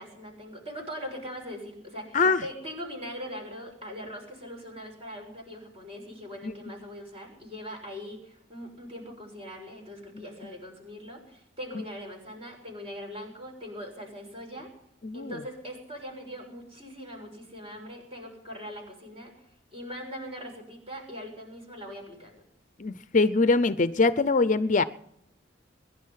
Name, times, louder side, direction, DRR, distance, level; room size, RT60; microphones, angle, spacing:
voice 1, 0.0-14.7 15.1-19.5 19.7-22.4, equal, 30° right, 2 dB, 6.4 m, -41 dB
voice 2, 15.0-15.4 22.8-24.8, left 3 dB, 40° left, 13 dB, 0.6 m, -23 dB
22.5 x 11.5 x 5.7 m, 0.74 s
head